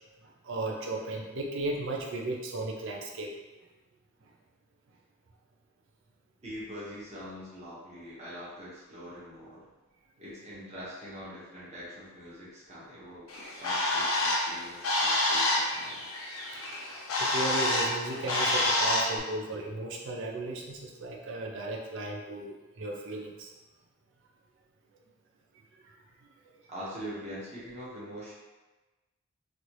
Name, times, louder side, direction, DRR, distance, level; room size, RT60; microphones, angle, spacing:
voice 1, 0.2-3.3 17.2-23.5 25.7-25.9, right 2 dB, 65° right, 0 dB, 0.5 m, -35 dB
voice 2, 6.4-9.7 10.2-16.0 26.7-28.3, equal, 35° right, -9 dB, 1.1 m, -43 dB
Bird, 13.3-19.2, left 1 dB, 80° left, 0.7 m, -28 dB
3.3 x 2.6 x 3.0 m, 1.2 s
head